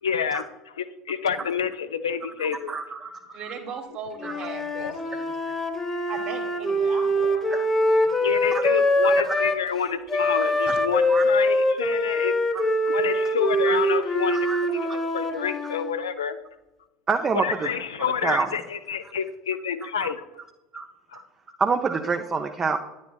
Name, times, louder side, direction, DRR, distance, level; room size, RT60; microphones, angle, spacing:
voice 1, 0.0-2.8 3.3-3.4 4.3-5.0 7.1-7.4 8.2-12.3 12.9-16.4 17.3-20.3 21.1-21.2, left 7 dB, 75° left, 10 dB, 0.5 m, -29 dB
voice 2, 2.4-3.5 4.2-4.3 7.5-7.6 11.1-11.2 12.5-12.6 13.7-13.8 14.3-14.6 14.9-15.0 17.1-17.7 18.0-18.5 20.0-20.1 20.7-20.9 21.1-21.2 21.6-22.8, right 5 dB, 25° right, 4 dB, 0.5 m, -27 dB
voice 3, 3.3-5.3 6.1-7.7 10.7-10.8, right 6 dB, 45° right, 4 dB, 1.4 m, -38 dB
Wind instrument woodwind instrument, 4.2-9.6 10.1-16.0, left 1 dB, 15° left, 1.0 m, -24 dB
10.0 x 9.5 x 2.3 m, 1.0 s
figure-of-eight pair, 70°, 3 cm